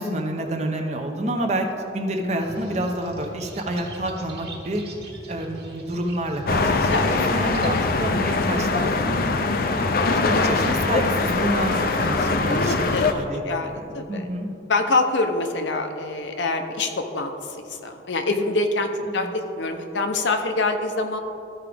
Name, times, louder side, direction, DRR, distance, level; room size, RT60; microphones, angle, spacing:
voice 1, 0.0-1.7 1.9-4.8 5.3-6.9 7.3-9.2 9.7-12.8 13.1-14.5 19.0-19.3, right 1 dB, 35° right, 3 dB, 0.7 m, -29 dB
sound 1, 2.4-7.8, right 1 dB, 55° right, 1.5 m, -41 dB
sound 2, 6.5-13.1, left 3 dB, 50° left, 0.4 m, -22 dB
voice 2, 12.5-13.1 13.5-14.2 14.7-21.2, left 3 dB, 80° left, 5 dB, 0.7 m, -25 dB
13.5 x 4.9 x 3.4 m, 2.9 s
head